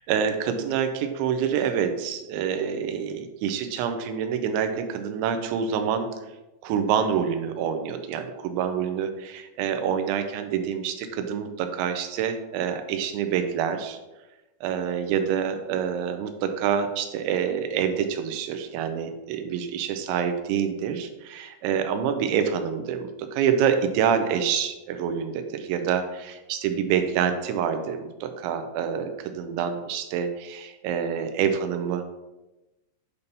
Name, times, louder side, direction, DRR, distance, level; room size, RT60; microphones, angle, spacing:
voice 1, 0.1-6.1 6.6-14.0 14.6-32.0, right 7 dB, 85° right, 8 dB, 2.9 m, -27 dB
8.2 x 2.8 x 5.2 m, 1.0 s
omnidirectional pair, 5.3 m